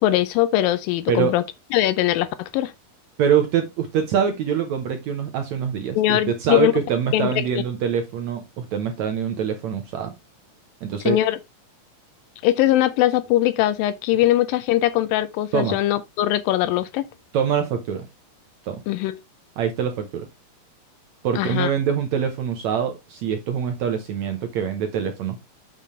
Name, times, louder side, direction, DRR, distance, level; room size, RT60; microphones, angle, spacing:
voice 1, 0.0-1.4 1.7-2.7 6.0-6.7 7.1-7.6 11.1-11.4 12.4-17.0 18.9-19.2 21.4-21.7, left 14 dB, 80° left, 2.2 m, -21 dB
voice 2, 3.2-10.1 10.8-11.2 15.5-15.8 17.3-18.1 18.7-18.8 19.6-20.3 21.2-25.4, right 8 dB, 70° right, 1.7 m, -24 dB
7.5 x 6.8 x 3.2 m
omnidirectional pair, 4.3 m